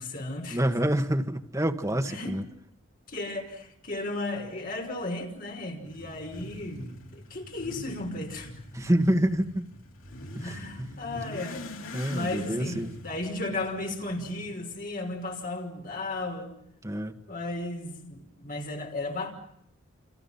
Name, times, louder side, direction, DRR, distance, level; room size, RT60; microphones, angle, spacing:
voice 1, 0.0-0.6 2.1-2.4 3.1-8.5 10.4-11.7 12.1-16.5 17.3-19.3, left 2 dB, 45° left, 5.4 m, -35 dB
voice 2, 0.5-2.4 8.7-9.7 10.3-10.5 11.2-11.3 11.9-12.9 16.8-17.2, right 1 dB, 15° right, 1.7 m, -27 dB
Motorcycle / Accelerating revving vroom, 5.8-14.7, left 1 dB, 80° left, 3.8 m, -44 dB
29.0 x 29.0 x 5.7 m
head